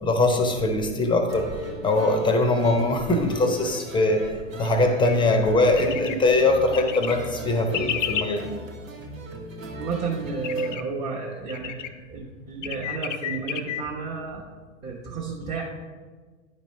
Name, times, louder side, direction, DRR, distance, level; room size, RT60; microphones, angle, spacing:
voice 1, 0.0-1.5 1.8-8.4, left 2 dB, 10° left, 4 dB, 0.8 m, -22 dB
sound 1, 1.3-10.8, right 1 dB, 90° right, 1.3 m, -38 dB
sound 2, 5.0-5.2 5.8-6.2 6.7-7.1 7.7-8.2 10.4-10.8 11.5-11.9 12.6-13.8, left 10 dB, 70° left, 0.6 m, -30 dB
voice 2, 9.8-14.5 14.8-15.6, right 4 dB, 20° right, -5 dB, 1.0 m, -32 dB
9.7 x 5.3 x 3.2 m, 1.5 s
hypercardioid pair, 105°, 38 cm